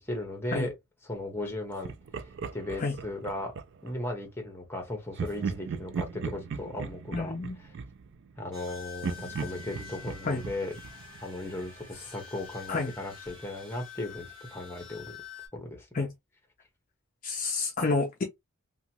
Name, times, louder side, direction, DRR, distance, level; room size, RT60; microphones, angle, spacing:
voice 1, 0.1-0.7 1.0-1.9 2.5-3.5 3.8-7.3 8.4-10.7 11.2-15.2 15.5-15.9, left 1 dB, 10° left, 0.9 m, -36 dB
Laughter, 1.8-4.0 5.1-8.6 9.0-11.8, right 6 dB, 55° right, 0.3 m, -38 dB
voice 2, 7.1-7.5 10.3-10.4 12.7-12.9 15.9-16.1 17.2-18.2, left 3 dB, 35° left, 0.4 m, -29 dB
sound 1, 8.5-15.5, left 6 dB, 20° right, 1.5 m, -47 dB
2.8 x 2.2 x 2.8 m
head